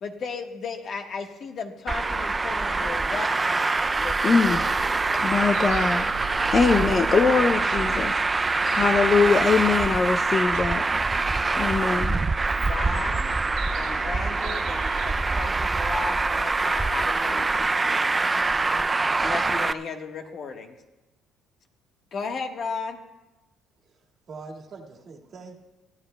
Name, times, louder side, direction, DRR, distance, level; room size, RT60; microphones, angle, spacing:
voice 1, 0.0-4.7 12.5-13.3 13.7-18.2 19.2-20.8 22.1-23.0, left 4 dB, 50° left, 4 dB, 1.3 m, -35 dB
Traffic noise roadway noise, 1.9-19.7, right 3 dB, 20° right, 0.3 m, -24 dB
voice 2, 4.2-4.6 5.1-6.1 6.5-10.8 11.6-12.2, left 5 dB, 35° left, 8 dB, 0.5 m, -22 dB
sound 1, 4.4-15.3, right 8 dB, 80° right, 1.5 m, -39 dB
voice 3, 24.3-25.6, right 4 dB, 45° right, 0 dB, 1.9 m, -42 dB
23.5 x 14.5 x 2.2 m, 1.1 s
cardioid pair, 125°, 0 cm